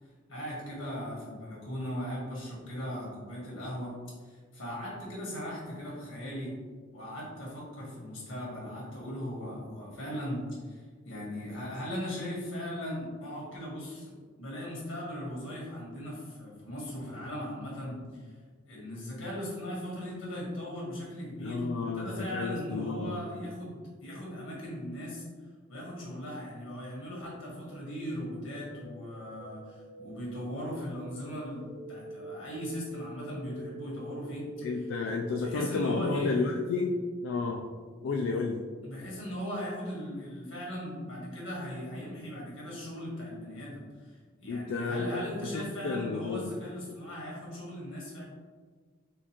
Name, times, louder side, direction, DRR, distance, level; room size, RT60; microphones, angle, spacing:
voice 1, 0.3-3.9 4.2-6.5 6.9-14.1 14.4-18.3 18.6-25.3 25.7-34.4 35.4-36.5 38.8-48.2, equal, 90° left, -5 dB, 1.5 m, -38 dB
voice 2, 21.4-23.2 34.6-37.0 37.2-37.6 38.0-38.6 44.5-45.3 45.5-46.5, left 4 dB, 65° left, 0 dB, 0.3 m, -31 dB
sound 1, 27.0-36.8, right 1 dB, 40° right, 1.2 m, -47 dB
4.3 x 2.4 x 2.9 m, 1.5 s
head